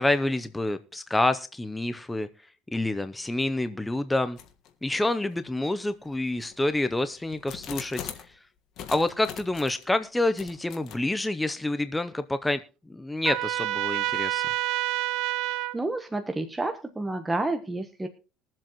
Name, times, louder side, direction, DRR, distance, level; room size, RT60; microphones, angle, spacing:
voice 1, 0.0-2.3 2.7-4.4 4.8-8.0 8.9-12.6 12.9-14.4, left 2 dB, 10° left, 11 dB, 0.6 m, -27 dB
sound 1, 4.4-4.7 5.3-5.4 6.1-8.4 8.8-9.9 10.4-11.0, left 9 dB, 60° left, 1.5 m, -41 dB
Trumpet, 13.2-15.8, right 15 dB, 70° right, 0.7 m, -28 dB
voice 2, 15.7-18.1, right 2 dB, 10° right, 6 dB, 1.1 m, -30 dB
22.0 x 7.5 x 3.0 m, 0.33 s
cardioid pair, 130°, 0 cm